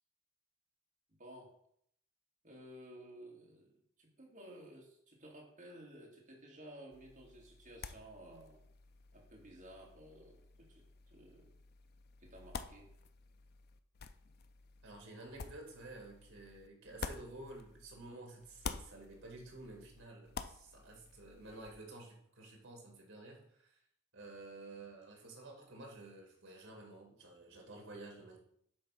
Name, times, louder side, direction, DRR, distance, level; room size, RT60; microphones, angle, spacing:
voice 1, 1.2-1.5 2.4-8.6 9.1-11.5 12.2-12.9, right 1 dB, 40° right, -2 dB, 1.9 m, -55 dB
sound 1, 6.9-18.1 18.4-21.8, left 5 dB, 50° left, 0.4 m, -50 dB
voice 2, 14.8-23.8 24.1-28.4, right 2 dB, 70° right, 0 dB, 2.1 m, -51 dB
8.6 x 3.4 x 5.9 m, 0.69 s
head